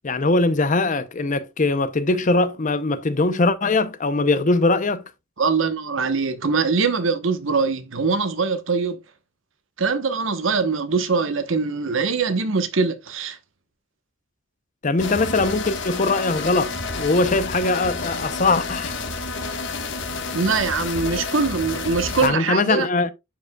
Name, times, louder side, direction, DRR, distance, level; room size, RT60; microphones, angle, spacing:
voice 1, 0.0-5.0 14.8-19.0 22.2-23.1, left 3 dB, 40° left, 0.6 m, -21 dB
voice 2, 5.4-9.0 9.8-13.4 20.3-22.9, right 4 dB, 75° right, 1.1 m, -22 dB
sound 1, 15.0-22.3, left 3 dB, 60° left, 1.5 m, -30 dB
11.0 x 5.1 x 2.3 m
head